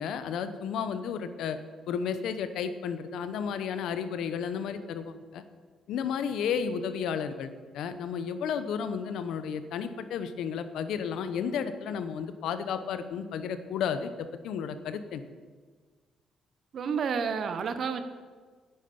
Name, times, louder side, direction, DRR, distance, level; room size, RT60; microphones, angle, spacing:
voice 1, 0.0-1.6 1.9-5.4 5.9-14.1 14.4-15.2, left 7 dB, 80° left, 10 dB, 0.9 m, -32 dB
voice 2, 16.7-18.0, right 6 dB, 60° right, 9 dB, 1.0 m, -30 dB
10.0 x 9.1 x 6.9 m, 1.5 s
cardioid pair, 90°, 0 cm